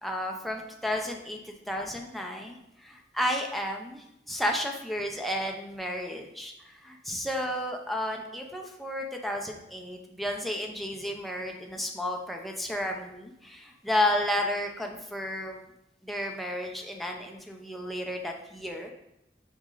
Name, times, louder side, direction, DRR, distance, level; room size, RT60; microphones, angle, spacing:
voice 1, 0.0-1.4 1.7-15.6 16.0-18.9, left 1 dB, ahead, 1 dB, 0.7 m, -32 dB
6.3 x 4.3 x 3.8 m, 0.84 s
head